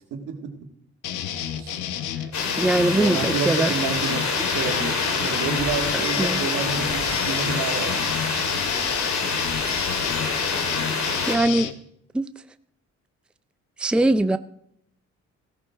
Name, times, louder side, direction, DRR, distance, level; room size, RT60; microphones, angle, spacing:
voice 1, 0.1-0.5 1.6-1.8 2.9-8.1, right 6 dB, 85° right, 3 dB, 2.1 m, -30 dB
sound 1, 1.0-11.7, left 10 dB, 80° left, 1.0 m, -31 dB
sound 2, 2.3-11.4, left 4 dB, 65° left, 3.0 m, -26 dB
voice 2, 2.6-3.7 6.2-6.4 11.3-11.7 12.1-12.3 13.8-14.4, right 2 dB, 5° right, 12 dB, 0.5 m, -21 dB
15.5 x 13.5 x 3.6 m, 0.72 s
cardioid pair, 90°, 30 cm